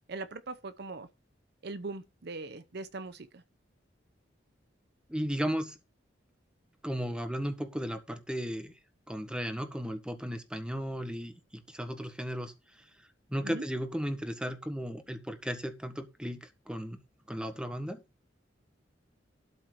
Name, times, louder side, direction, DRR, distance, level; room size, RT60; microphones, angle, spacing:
voice 1, 0.1-1.1 1.6-3.4 13.4-13.6, right 3 dB, 60° right, 0.8 m, -40 dB
voice 2, 5.1-5.8 6.8-8.7 9.1-12.5 13.3-17.0 17.3-18.0, equal, 5° right, 1.7 m, -35 dB
12.5 x 4.4 x 6.3 m
head